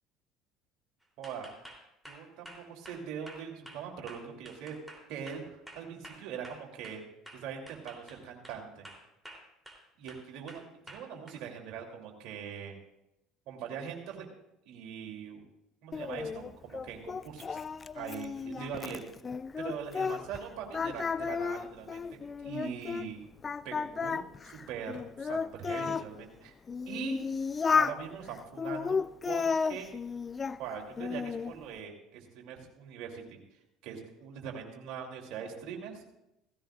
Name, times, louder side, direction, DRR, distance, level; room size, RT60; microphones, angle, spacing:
sound 1, 1.2-7.0 7.3-8.6 8.8-9.8 10.1-11.4, right 1 dB, ahead, 3.3 m, -50 dB
voice 1, 1.2-1.5 2.0-4.8 5.1-7.0 7.3-8.9 10.0-12.7 13.5-14.3 14.6-15.5 15.8-17.6 17.9-19.0 19.6-23.2 23.6-26.5 26.9-27.2 27.7-29.0 29.2-29.9 30.6-33.4 33.8-36.0, right 7 dB, 60° right, 1 dB, 3.0 m, -42 dB
Singing, 15.9-20.4 20.7-23.1 23.4-26.1 26.7-28.0 28.6-30.6 31.0-31.5, left 5 dB, 30° left, 0.4 m, -33 dB
17.0 x 16.0 x 2.5 m, 0.87 s
hypercardioid pair, 65°, 0 cm